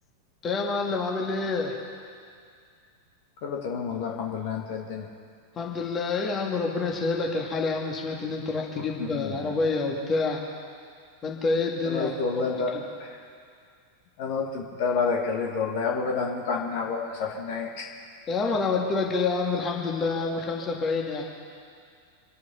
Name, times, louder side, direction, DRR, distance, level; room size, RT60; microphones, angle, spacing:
voice 1, 0.4-1.8 5.6-10.4 11.2-12.5 12.7-12.8 18.3-21.2, left 4 dB, 25° left, -1 dB, 2.4 m, -27 dB
voice 2, 3.4-5.1 9.0-9.5 11.8-12.7 14.2-17.9, left 5 dB, 50° left, -1 dB, 2.3 m, -29 dB
27.0 x 9.4 x 5.7 m, 2.2 s
figure-of-eight pair, 90°, 0 cm